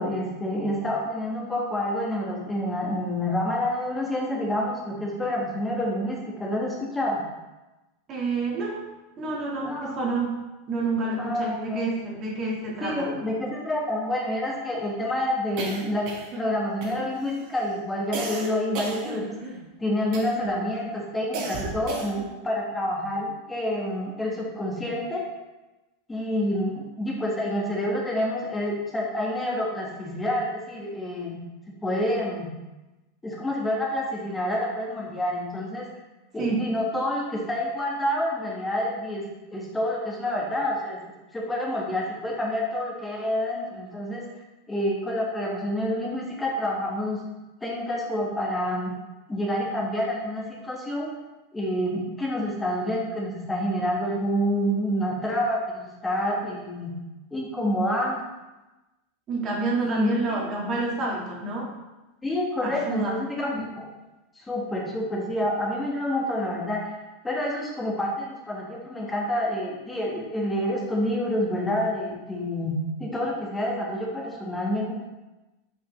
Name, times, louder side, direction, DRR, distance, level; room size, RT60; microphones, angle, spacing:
voice 1, 0.0-7.2 9.6-9.9 11.2-11.9 12.8-16.1 16.3-19.3 19.8-25.2 26.1-31.4 31.8-32.5 33.2-35.9 36.3-39.3 39.5-41.0 41.3-44.2 44.7-47.2 47.6-48.9 49.3-51.1 51.5-56.9 57.3-58.2 59.8-60.2 62.2-63.9 64.4-66.8 67.2-74.9, left 1 dB, 15° left, -2 dB, 1.6 m, -28 dB
voice 2, 8.1-8.8 9.2-10.3 10.7-13.1 36.4-36.6 59.3-61.7 62.6-63.2, right 3 dB, 35° right, -3 dB, 1.7 m, -28 dB
sound 1, 15.6-16.5 16.8-17.3 18.1-19.6 20.1-20.6 21.3-22.3, right 3 dB, 55° right, 1.5 m, -34 dB
5.6 x 5.5 x 3.2 m, 1.1 s
hypercardioid pair, 105°, 0 cm